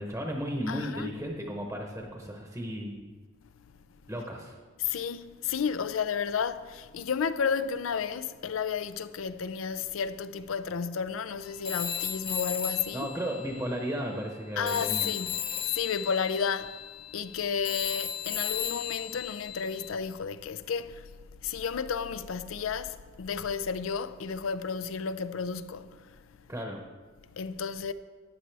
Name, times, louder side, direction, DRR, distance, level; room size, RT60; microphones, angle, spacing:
voice 1, 0.0-3.1 4.1-4.5 12.9-15.1 26.5-26.8, equal, 10° right, 0.9 m, -34 dB
voice 2, 0.7-1.1 4.8-13.1 14.6-16.8 17.1-21.1 21.4-26.0 27.4-27.9, left 6 dB, 80° left, 0.5 m, -32 dB
Telephone, 11.6-14.4 14.7-19.9, left 9 dB, 25° left, 0.6 m, -35 dB
13.5 x 9.3 x 3.4 m
head